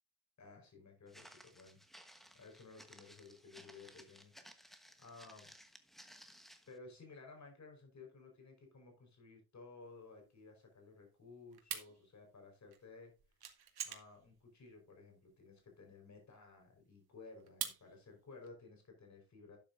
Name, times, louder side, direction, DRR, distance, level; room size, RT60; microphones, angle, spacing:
voice 1, 0.4-1.8 2.3-5.5 6.7-13.1 13.8-19.6, left 3 dB, 50° left, 3 dB, 4.6 m, -56 dB
Walk footsteps, 1.1-6.8, equal, ahead, 1.1 m, -59 dB
sound 1, 9.8-18.5, right 8 dB, 85° right, 2.1 m, -47 dB
12.0 x 8.6 x 2.6 m, 0.32 s
wide cardioid pair, 170°, 37 cm